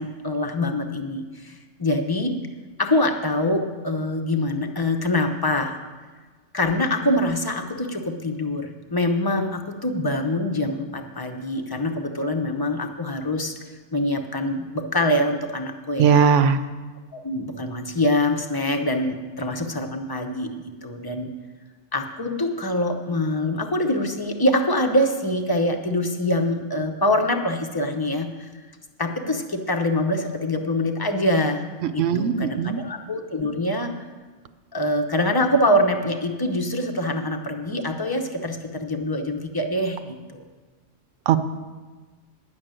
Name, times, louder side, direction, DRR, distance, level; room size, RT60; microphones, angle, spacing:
voice 1, 0.0-2.4 2.8-5.8 6.5-13.6 13.9-16.2 17.1-21.3 21.9-28.5 29.0-31.6 31.9-33.9 34.7-40.5, left 1 dB, 20° left, 5 dB, 0.7 m, -24 dB
voice 2, 16.0-16.6 31.8-32.8 41.3-41.4, right 7 dB, 70° right, 11 dB, 1.0 m, -19 dB
10.5 x 6.4 x 9.0 m, 1.4 s
omnidirectional pair, 1.4 m